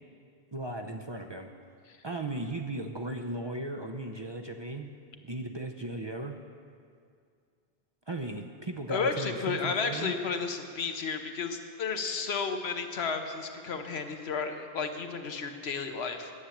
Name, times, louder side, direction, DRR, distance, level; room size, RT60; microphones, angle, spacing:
voice 1, 0.5-1.5 2.0-4.9 5.2-6.4 8.1-10.1, right 2 dB, 35° right, 3 dB, 0.5 m, -36 dB
voice 2, 8.9-16.3, left 5 dB, 90° left, 6 dB, 1.2 m, -32 dB
10.0 x 8.8 x 7.1 m, 2.2 s
omnidirectional pair, 1.0 m